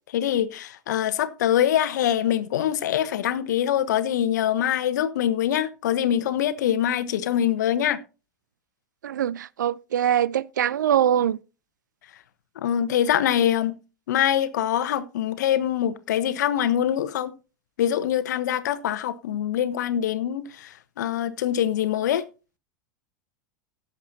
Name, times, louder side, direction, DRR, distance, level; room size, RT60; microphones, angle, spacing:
voice 1, 0.1-8.0 12.6-13.7 14.1-17.3 17.8-22.2, left 10 dB, 65° left, 1.0 m, -24 dB
voice 2, 9.0-11.4, right 10 dB, 75° right, 0.5 m, -23 dB
16.5 x 7.4 x 2.8 m
figure-of-eight pair, 85°, 10 cm